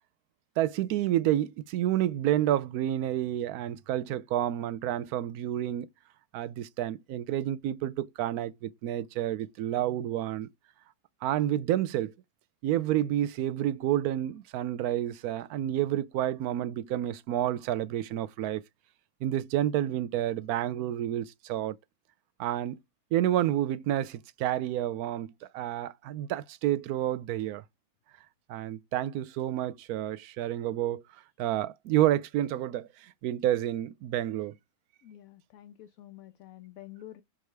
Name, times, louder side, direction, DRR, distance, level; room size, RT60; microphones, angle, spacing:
voice 1, 0.6-5.9 6.3-10.5 11.2-12.1 12.6-18.6 19.2-21.8 22.4-22.8 23.1-27.6 28.5-31.0 31.4-34.6, right 12 dB, 75° right, 1.0 m, -29 dB
voice 2, 35.0-37.2, left 13 dB, 70° left, 1.0 m, -48 dB
5.8 x 4.8 x 3.3 m
omnidirectional pair, 1.6 m